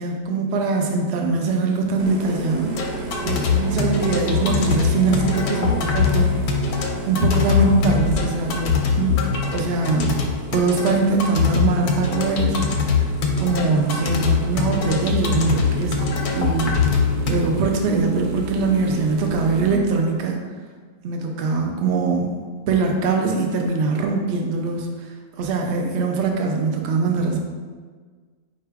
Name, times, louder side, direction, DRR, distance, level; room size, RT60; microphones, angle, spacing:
voice 1, 0.0-2.7 3.2-9.2 9.5-10.2 10.5-13.1 13.4-16.1 16.4-16.8 17.2-20.4 21.0-22.4 22.7-24.9 25.4-27.4, right 4 dB, 60° right, 2 dB, 0.7 m, -22 dB
sound 1, 2.0-19.7, right 2 dB, 85° right, 1.1 m, -32 dB
sound 2, 2.7-17.3, left 6 dB, 75° left, 1.1 m, -22 dB
4.5 x 2.9 x 3.4 m, 1.5 s
omnidirectional pair, 1.6 m